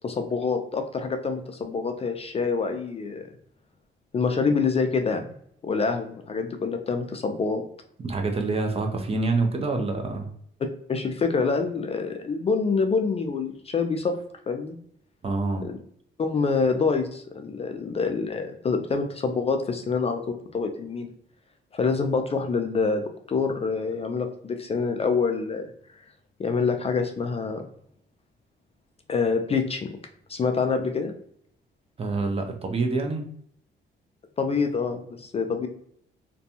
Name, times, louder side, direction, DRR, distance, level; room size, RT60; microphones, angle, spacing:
voice 1, 0.0-3.3 4.1-5.3 5.6-7.6 10.9-14.2 14.5-14.8 15.6-15.8 16.2-20.2 20.5-21.1 21.7-25.7 26.4-27.6 29.1-29.9 30.3-31.1 34.4-35.7, left 4 dB, 30° left, 5 dB, 0.3 m, -26 dB
voice 2, 8.0-10.3 15.2-15.7 32.0-33.2, right 3 dB, 30° right, 4 dB, 0.5 m, -26 dB
2.5 x 2.2 x 2.7 m, 0.66 s
cardioid pair, 90°, 20 cm